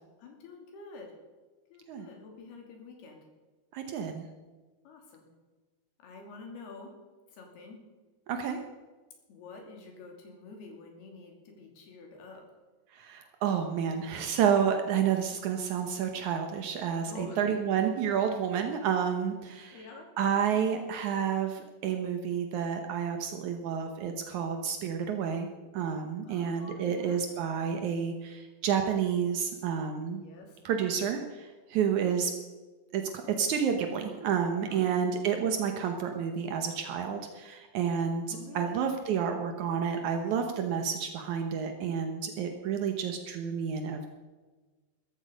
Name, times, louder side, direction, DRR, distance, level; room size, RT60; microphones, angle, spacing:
voice 1, 0.2-1.1 1.7-3.2 4.8-5.3 6.0-6.9 7.3-7.8 9.3-12.4 17.1-17.8 19.7-20.1 26.2-27.2 30.1-30.6 34.5-34.8 38.3-38.8, left 4 dB, 65° left, 2 dB, 4.7 m, -48 dB
voice 2, 3.7-4.2 8.3-8.6 12.9-19.8 20.2-25.5 25.7-30.2 30.6-32.3 32.9-44.1, right 7 dB, 85° right, 5 dB, 1.6 m, -30 dB
16.5 x 14.0 x 5.2 m, 1.3 s
omnidirectional pair, 5.0 m